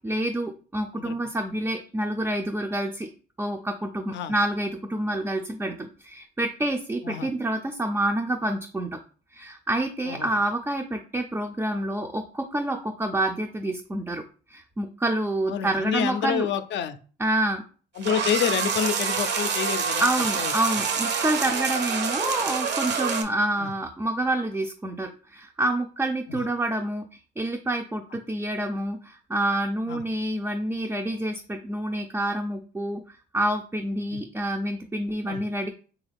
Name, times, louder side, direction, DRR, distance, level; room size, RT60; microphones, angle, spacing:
voice 1, 0.0-3.1 3.4-9.0 9.3-14.2 14.5-16.5 17.2-17.6 20.0-27.0 27.4-33.0 33.3-35.7, right 1 dB, 10° right, 2 dB, 0.3 m, -28 dB
voice 2, 15.5-17.0 18.0-20.1 20.4-20.5 23.6-23.7 26.3-26.4 29.9-30.0 34.1-34.2 35.3-35.4, left 9 dB, 65° left, 12 dB, 0.4 m, -28 dB
sound 1, 18.0-23.2, right 5 dB, 60° right, 0.6 m, -27 dB
3.2 x 2.3 x 3.4 m, 0.39 s
cardioid pair, 90°, 20 cm